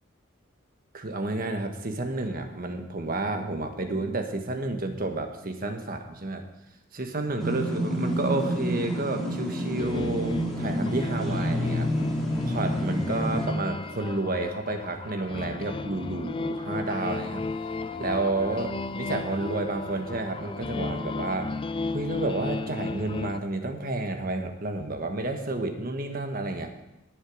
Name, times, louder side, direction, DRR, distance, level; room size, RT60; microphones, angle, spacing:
voice 1, 0.9-6.4 6.9-11.9 12.4-17.4 18.0-21.5 21.9-26.7, right 2 dB, 45° right, 5 dB, 1.3 m, -30 dB
sound 1, 7.4-13.5, equal, ahead, 2.5 m, -28 dB
sound 2, 9.8-23.4, left 3 dB, 25° left, 0.3 m, -35 dB
18.5 x 7.0 x 4.9 m, 0.90 s
head